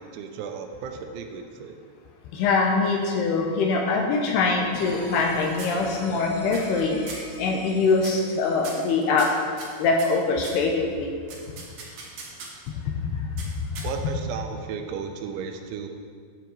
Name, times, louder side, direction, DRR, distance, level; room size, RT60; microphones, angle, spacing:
voice 1, 0.0-1.8 13.8-15.9, right 6 dB, 85° right, 5 dB, 3.0 m, -34 dB
voice 2, 2.3-9.3 9.8-11.1 12.9-13.3, left 4 dB, 80° left, 1 dB, 2.4 m, -23 dB
sound 1, 4.4-5.3 5.6-6.2 6.5-6.8 7.1-7.4 8.0-8.3 8.6-10.6 11.3-12.7 13.4-14.2, right 3 dB, 65° right, 2.0 m, -41 dB
sound 2, 4.7-9.6, left 1 dB, 60° left, 3.7 m, -41 dB
14.0 x 7.3 x 3.0 m, 2.1 s
omnidirectional pair, 5.4 m